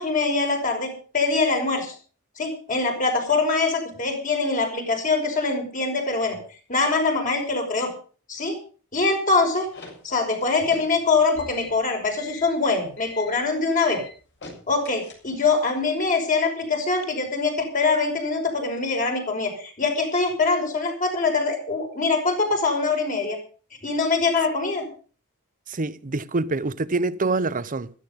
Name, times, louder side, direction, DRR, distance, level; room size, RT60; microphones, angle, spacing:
voice 1, 0.0-1.9 2.4-6.4 6.7-7.9 8.3-8.6 8.9-9.7 10.0-14.0 14.7-23.4 23.8-24.8, left 3 dB, 35° left, 5.5 m, -23 dB
sound 1, 9.3-15.6, left 3 dB, 55° left, 7.1 m, -44 dB
voice 2, 25.7-27.9, right 3 dB, 35° right, 0.8 m, -25 dB
16.0 x 14.0 x 5.3 m
head